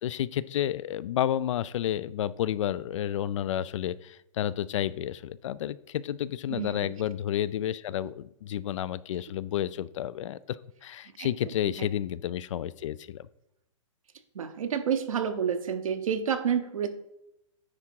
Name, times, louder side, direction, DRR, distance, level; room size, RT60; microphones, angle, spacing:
voice 1, 0.0-13.3, left 11 dB, 65° left, 19 dB, 0.4 m, -31 dB
voice 2, 14.3-16.9, right 7 dB, 85° right, 7 dB, 0.9 m, -29 dB
9.6 x 3.7 x 4.6 m, 0.85 s
hypercardioid pair, 140°, 17 cm